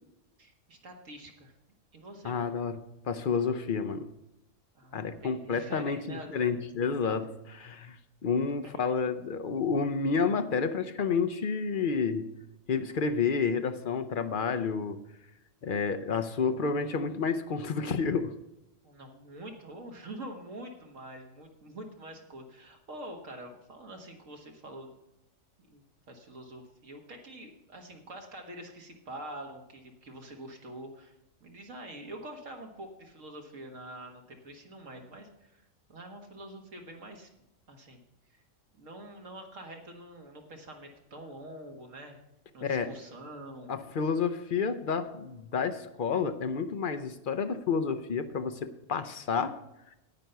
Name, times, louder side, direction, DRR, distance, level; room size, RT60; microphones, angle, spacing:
voice 1, 0.4-1.5 1.9-2.5 4.8-6.5 8.7-8.8 18.8-24.9 25.7-31.1 31.4-35.6 35.9-37.3 37.7-38.0 38.3-38.4 38.7-42.2 42.5-43.7, right 1 dB, 85° right, 3 dB, 1.9 m, -46 dB
voice 2, 2.2-4.0 4.9-8.0 8.2-12.3 12.7-15.0 15.6-18.3 42.6-42.9 43.7-49.6, left 5 dB, 50° left, 11 dB, 0.7 m, -30 dB
9.3 x 9.3 x 5.6 m, 0.91 s
omnidirectional pair, 1.3 m